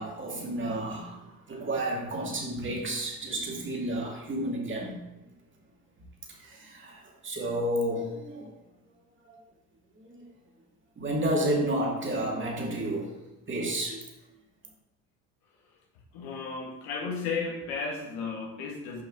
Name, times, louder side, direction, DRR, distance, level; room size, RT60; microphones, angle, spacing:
voice 1, 0.0-5.0 6.3-8.5 9.2-9.4 10.0-10.2 11.0-13.1 13.5-14.0, right 1 dB, 30° right, -1 dB, 2.1 m, -31 dB
voice 2, 16.1-19.0, left 4 dB, 75° left, -1 dB, 1.8 m, -34 dB
6.7 x 5.3 x 3.7 m, 0.97 s
supercardioid pair, 75°, 38 cm